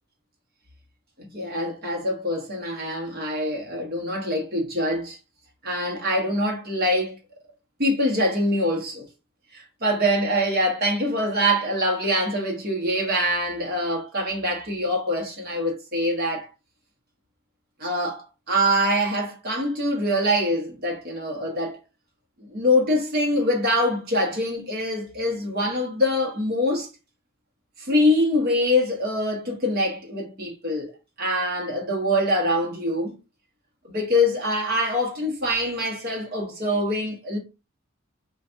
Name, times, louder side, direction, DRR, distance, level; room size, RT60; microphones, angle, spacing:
voice 1, 1.2-5.2 5.6-7.2 7.8-9.1 9.5-16.5 17.8-21.8 22.4-26.9 27.8-33.1 33.8-37.4, equal, 45° right, 1.1 m, -24 dB
2.6 x 2.5 x 3.3 m
head